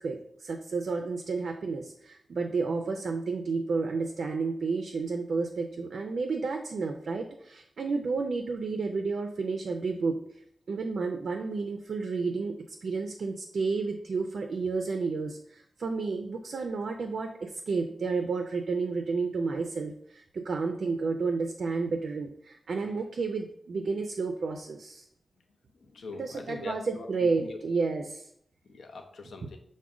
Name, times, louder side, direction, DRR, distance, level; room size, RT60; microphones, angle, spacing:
voice 1, 0.0-10.2 10.7-25.0 26.2-28.3, right 4 dB, 65° right, 5 dB, 0.4 m, -31 dB
voice 2, 25.8-27.6 28.7-29.6, left 3 dB, 75° left, 4 dB, 0.6 m, -42 dB
5.9 x 2.1 x 3.6 m, 0.72 s
wide cardioid pair, 155°, 0 cm